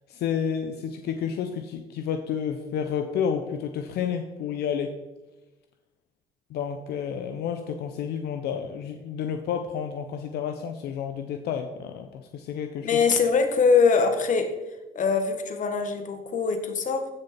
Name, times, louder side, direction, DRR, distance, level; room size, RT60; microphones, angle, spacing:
voice 1, 0.1-4.9 6.5-13.0, left 7 dB, 75° left, 6 dB, 0.8 m, -30 dB
voice 2, 12.8-14.5 15.0-17.1, left 5 dB, 50° left, 6 dB, 1.6 m, -22 dB
15.0 x 6.6 x 4.3 m, 1.1 s
cardioid pair, 110°, 17 cm